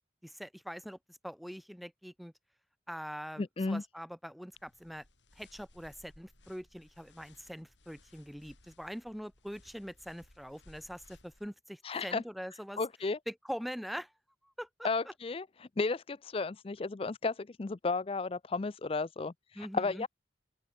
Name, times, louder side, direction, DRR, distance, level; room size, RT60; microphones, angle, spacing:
voice 1, 0.2-2.3 2.9-5.0 5.4-12.8 13.3-14.1 14.4-15.1 19.5-20.1, equal, ahead, 2.3 m, -43 dB
voice 2, 3.4-3.8 11.8-12.2 12.8-13.2 14.8-20.1, left 3 dB, 30° left, 0.4 m, -33 dB
sound 1, 4.5-11.5, left 2 dB, 80° left, 4.0 m, -62 dB
open air
head